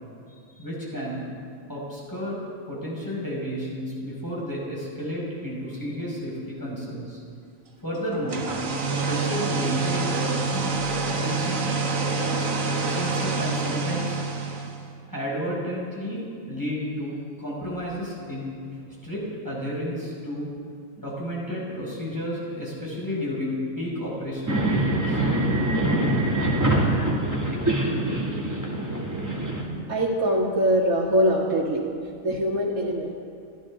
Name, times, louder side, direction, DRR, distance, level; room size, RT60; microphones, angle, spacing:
voice 1, 0.6-1.2 1.7-2.4 2.7-7.2 7.8-8.5 8.8-10.8 11.1-11.7 12.2-12.4 12.7-14.2 15.1-20.5 21.0-25.3, equal, 15° left, -6 dB, 5.3 m, -32 dB
sound 1, 8.1-14.9, right 3 dB, 70° right, 1.6 m, -27 dB
sound 2, 24.5-29.6, right 1 dB, 10° right, 2.3 m, -24 dB
voice 2, 29.9-31.8 32.2-33.2, equal, 85° right, -7 dB, 2.3 m, -23 dB
29.0 x 13.0 x 3.7 m, 2.3 s
omnidirectional pair, 1.5 m